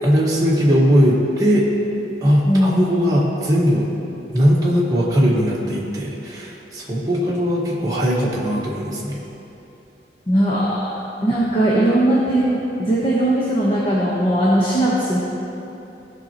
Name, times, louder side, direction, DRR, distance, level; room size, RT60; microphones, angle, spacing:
voice 1, 0.0-1.7 2.2-3.9 4.3-9.2, equal, 20° right, -6 dB, 1.5 m, -19 dB
voice 2, 2.5-3.1 10.3-10.8 11.2-15.2, right 1 dB, 35° left, -6 dB, 1.1 m, -19 dB
15.5 x 5.6 x 3.0 m, 2.9 s
head